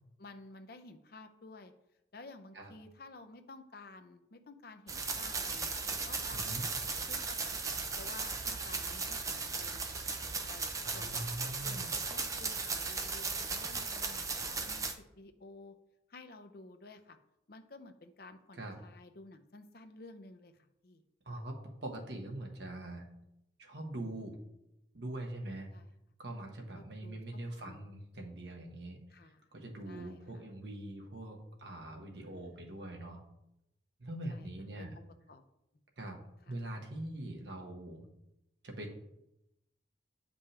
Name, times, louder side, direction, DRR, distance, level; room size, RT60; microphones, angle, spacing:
voice 1, 0.2-1.7 2.1-7.5 8.0-9.8 10.5-14.8 15.2-15.8 16.1-17.2 17.5-20.5 20.8-21.0 25.7-25.9 26.7-27.9 29.1-29.5 29.9-30.4 32.2-32.3 32.6-32.8 34.3-34.5 34.8-34.9 35.3-35.4 36.5-36.6, left 3 dB, 55° left, 7 dB, 0.6 m, -53 dB
sound 1, 4.9-14.9, right 4 dB, 15° right, 0.4 m, -37 dB
voice 2, 6.3-6.6 10.8-11.9 18.6-18.8 21.2-21.5 21.8-23.0 23.6-24.4 24.9-25.7 26.2-29.0 29.5-33.2 34.0-34.9 36.0-36.2 36.5-38.0 38.6-39.0, right 1 dB, 65° right, 1 dB, 1.2 m, -42 dB
8.5 x 5.3 x 3.3 m, 0.84 s
head